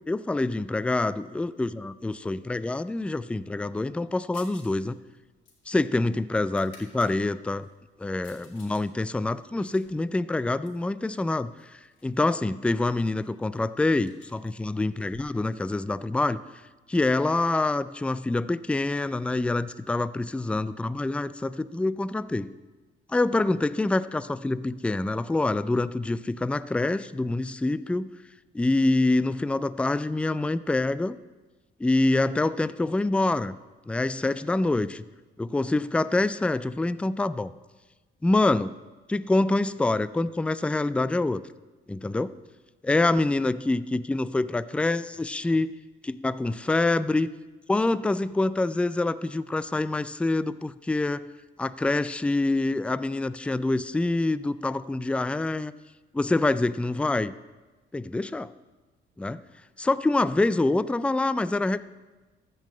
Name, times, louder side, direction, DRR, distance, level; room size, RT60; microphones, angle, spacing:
voice 1, 0.1-5.0 5.7-7.7 8.0-11.7 12.0-16.4 16.9-22.5 23.1-28.1 28.5-31.2 31.8-33.6 33.9-35.0 35.4-37.5 38.2-38.7 39.1-41.4 41.9-42.3 42.9-45.8 46.0-47.3 47.7-51.3 51.6-55.7 56.1-57.3 57.9-58.5 59.2-59.4 59.8-61.8, left 2 dB, 5° left, 15 dB, 0.3 m, -26 dB
sound 1, 4.3-4.8 5.1-7.1 7.6-8.8 9.2-10.9 11.6-12.2 12.4-12.5 12.8-15.9, left 4 dB, 70° left, 2.7 m, -55 dB
13.5 x 5.5 x 7.5 m, 1.2 s
cardioid pair, 90°, 20 cm